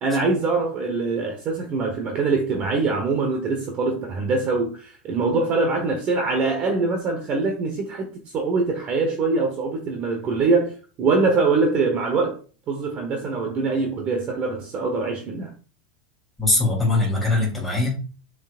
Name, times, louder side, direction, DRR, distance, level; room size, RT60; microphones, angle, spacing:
voice 1, 0.0-12.4 12.7-15.5, right 3 dB, 30° right, 1.2 m, -23 dB
voice 2, 16.4-17.9, left 2 dB, ahead, 3.5 m, -21 dB
7.3 x 6.4 x 2.5 m
supercardioid pair, 165°, 4 cm